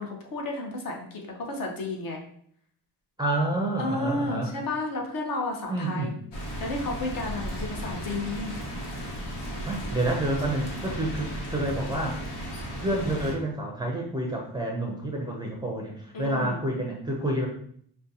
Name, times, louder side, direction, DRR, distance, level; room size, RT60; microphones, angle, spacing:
voice 1, 0.0-2.2 3.8-6.1 6.6-8.5 16.1-16.6, left 2 dB, 55° left, 1 dB, 0.8 m, -32 dB
voice 2, 3.2-4.5 5.7-6.1 9.6-12.2 12.8-17.5, right 1 dB, 10° right, 0 dB, 0.4 m, -29 dB
sound 1, 6.3-13.4, equal, 85° left, 1.1 m, -35 dB
4.9 x 2.2 x 2.7 m, 0.63 s
cardioid pair, 140°, 41 cm